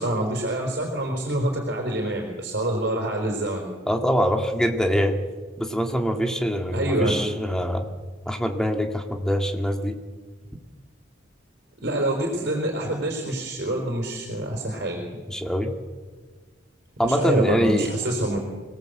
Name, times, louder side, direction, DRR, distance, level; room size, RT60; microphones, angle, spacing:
voice 1, 0.0-3.6 6.7-7.1 11.8-15.1 17.0-18.4, right 1 dB, 55° right, 1 dB, 4.3 m, -26 dB
voice 2, 3.9-5.2 5.6-7.9 8.3-10.0 15.3-15.7 17.0-17.9, equal, 5° left, 4 dB, 2.0 m, -24 dB
25.0 x 18.0 x 8.0 m, 1.4 s
head